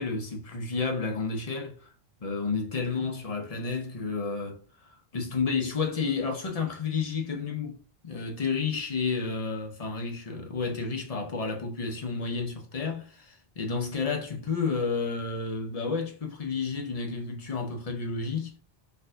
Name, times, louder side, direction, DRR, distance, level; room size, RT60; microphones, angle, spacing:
voice 1, 0.0-1.9 2.2-4.6 5.1-18.5, left 4 dB, 40° left, 0.8 m, -31 dB
4.5 x 2.7 x 2.5 m
omnidirectional pair, 1.1 m